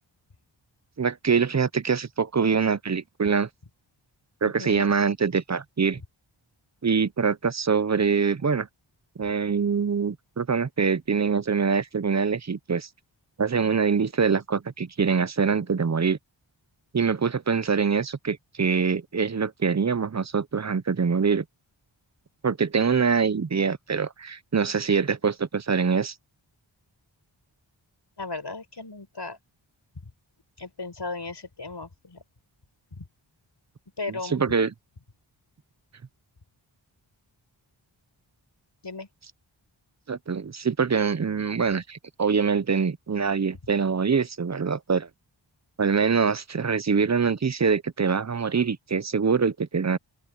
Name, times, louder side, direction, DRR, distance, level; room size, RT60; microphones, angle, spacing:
voice 1, 1.0-3.5 4.4-6.0 6.8-8.7 9.2-12.9 13.4-16.2 16.9-21.4 22.4-26.1 34.2-34.7 40.1-45.1 45.8-50.0, right 5 dB, 35° right, 0.7 m, -24 dB
voice 2, 4.6-4.9 28.2-29.4 30.6-32.2 32.9-33.0 34.0-34.5 38.8-39.1, left 3 dB, 60° left, 6.3 m, -36 dB
open air
wide cardioid pair, 70°, 47 cm